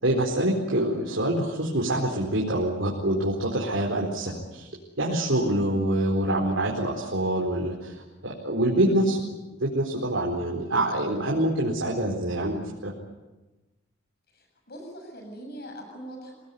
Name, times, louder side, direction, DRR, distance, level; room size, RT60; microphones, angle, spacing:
voice 1, 0.0-4.7 5.0-9.2 9.6-12.9, right 1 dB, 70° right, -2 dB, 4.4 m, -26 dB
voice 2, 14.3-16.3, right 1 dB, 50° left, 3 dB, 7.1 m, -42 dB
27.0 x 19.0 x 9.7 m, 1.1 s
head